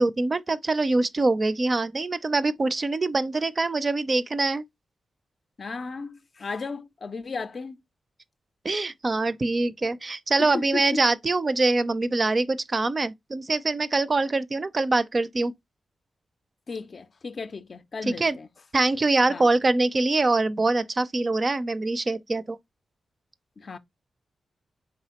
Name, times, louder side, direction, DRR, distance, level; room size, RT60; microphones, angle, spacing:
voice 1, 0.0-4.6 8.6-15.5 18.0-18.4 18.7-22.6, right 3 dB, 40° right, 0.4 m, -24 dB
voice 2, 5.6-7.8 10.4-11.0 16.7-18.5 19.3-19.5 23.6-23.8, left 4 dB, 50° left, 0.4 m, -35 dB
4.1 x 3.4 x 2.9 m
cardioid pair, 65°, 0 cm